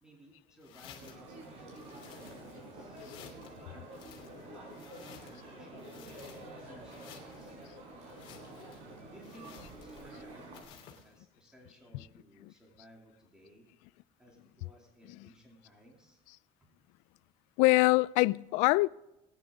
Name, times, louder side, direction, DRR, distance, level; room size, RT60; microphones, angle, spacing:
voice 1, 0.0-6.2 6.5-7.6 9.1-9.5 9.8-13.7 14.2-16.2 16.6-16.7, equal, 5° right, 2.8 m, -59 dB
sound 1, 0.6-1.3 1.7-2.6 2.9-3.6 3.9-5.5 5.8-6.6 6.9-7.5 8.1-8.8 9.2-10.2 10.5-11.1, left 8 dB, 45° left, 3.0 m, -54 dB
sound 2, 1.0-10.6, right 1 dB, 60° right, 5.2 m, -48 dB
voice 2, 17.6-18.9, left 22 dB, 80° left, 0.4 m, -25 dB
20.5 x 10.0 x 3.6 m
cardioid pair, 175°, 12 cm